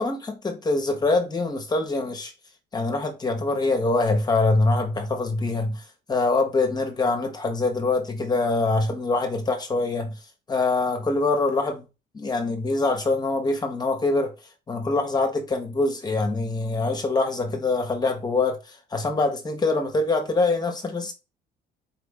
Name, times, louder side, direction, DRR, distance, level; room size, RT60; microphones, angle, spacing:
voice 1, 0.4-2.3 2.7-5.8 6.1-10.1 10.5-11.9 12.1-14.3 14.7-21.1, left 3 dB, 25° left, 1.2 m, -24 dB
4.5 x 3.4 x 3.3 m
cardioid pair, 110°, 17 cm